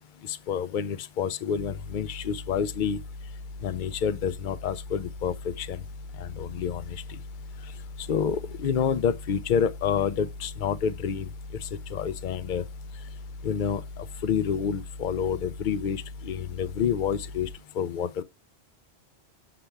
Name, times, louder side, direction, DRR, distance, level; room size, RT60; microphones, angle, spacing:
voice 1, 0.2-3.0 3.6-5.8 6.2-7.0 8.0-11.3 11.6-12.6 13.4-17.5 17.8-18.2, left 7 dB, 55° left, 0.7 m, -28 dB
sound 1, 1.6-17.6, left 2 dB, 55° right, 0.8 m, -41 dB
6.8 x 5.9 x 3.4 m
omnidirectional pair, 1.1 m